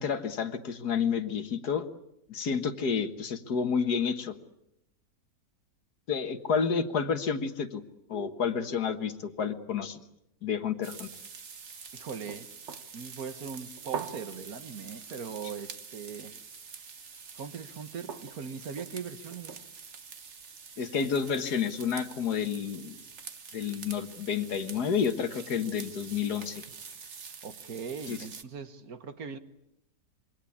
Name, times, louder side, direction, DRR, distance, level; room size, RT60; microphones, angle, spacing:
voice 1, 0.0-1.9 2.3-4.3 6.1-7.8 8.1-10.0 10.4-11.1 20.8-23.0 23.5-26.6 28.1-28.2, left 6 dB, 70° left, 2.0 m, -30 dB
sound 1, 10.8-28.4, right 6 dB, 45° right, 1.5 m, -45 dB
voice 2, 11.9-12.5 12.9-16.4 17.4-19.6 27.4-29.4, right 6 dB, 60° right, 1.7 m, -40 dB
26.5 x 22.5 x 8.6 m
omnidirectional pair, 1.8 m